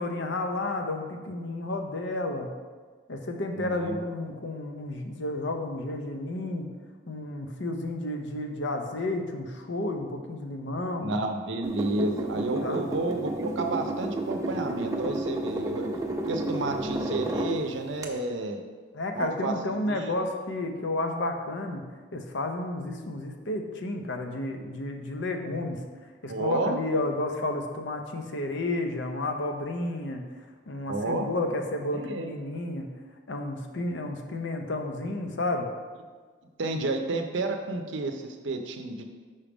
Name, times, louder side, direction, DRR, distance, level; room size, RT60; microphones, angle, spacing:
voice 1, 0.0-2.5 3.1-6.7 7.1-11.1 12.6-12.8 16.6-16.7 18.9-21.8 22.1-25.8 26.2-30.2 30.7-32.9 33.3-35.7, left 2 dB, 70° left, 4 dB, 0.6 m, -31 dB
voice 2, 3.6-4.0 11.0-15.9 16.3-18.6 19.1-20.1 26.3-26.8 30.9-31.3 31.9-32.3 36.6-39.0, right 2 dB, 75° right, 5 dB, 0.6 m, -31 dB
sound 1, 11.6-17.6 18.0-18.1, right 2 dB, 15° right, 0.4 m, -31 dB
5.5 x 3.5 x 4.9 m, 1.5 s
head